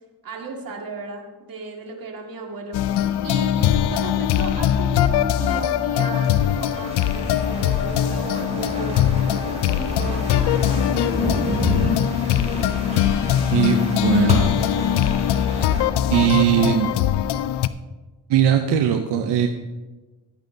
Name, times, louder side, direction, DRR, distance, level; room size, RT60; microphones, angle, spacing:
voice 1, 0.2-2.8 3.2-10.3, right 4 dB, 60° right, 1 dB, 2.1 m, -35 dB
sound 1, 2.7-17.7, left 10 dB, 80° left, 0.5 m, -21 dB
sound 2, 6.1-15.8, right 1 dB, 15° right, 3.1 m, -31 dB
voice 2, 13.5-14.5 16.1-16.9 18.3-19.5, right 10 dB, 90° right, 5 dB, 0.7 m, -19 dB
16.0 x 8.9 x 2.7 m, 1.2 s
cardioid pair, 70°, 40 cm